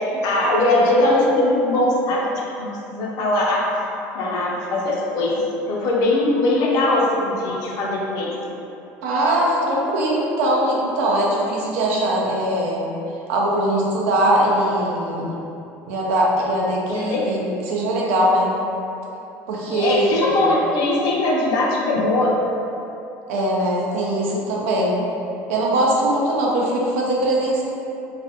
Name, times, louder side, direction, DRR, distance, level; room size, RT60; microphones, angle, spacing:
voice 1, 0.0-2.3 2.6-3.7 4.1-5.4 5.7-8.3 16.9-17.3 19.7-22.3, left 2 dB, 65° left, -3 dB, 0.5 m, -20 dB
voice 2, 9.0-12.9 13.3-15.3 15.9-18.5 19.5-20.4 23.3-25.0 25.5-27.6, right 1 dB, 85° right, -3 dB, 0.5 m, -21 dB
2.4 x 2.2 x 2.7 m, 2.9 s
supercardioid pair, 95°, 7 cm